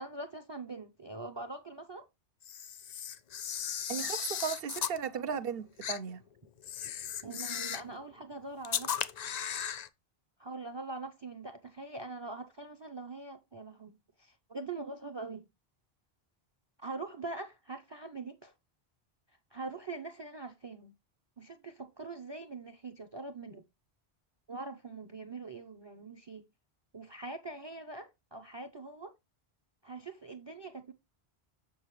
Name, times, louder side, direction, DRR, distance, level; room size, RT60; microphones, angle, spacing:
voice 1, 0.0-2.1 7.2-9.1 10.4-13.9 14.2-15.4 16.8-18.5 19.5-20.9 21.4-23.6 24.5-26.4 26.9-29.1 29.8-30.9, right 3 dB, 30° right, 0.6 m, -43 dB
Camera, 2.4-5.0 5.8-6.0 6.6-7.9 8.6-9.9, left 9 dB, 55° left, 0.5 m, -36 dB
voice 2, 3.9-6.2, right 7 dB, 65° right, 0.9 m, -36 dB
7.1 x 6.5 x 3.1 m
omnidirectional pair, 1.1 m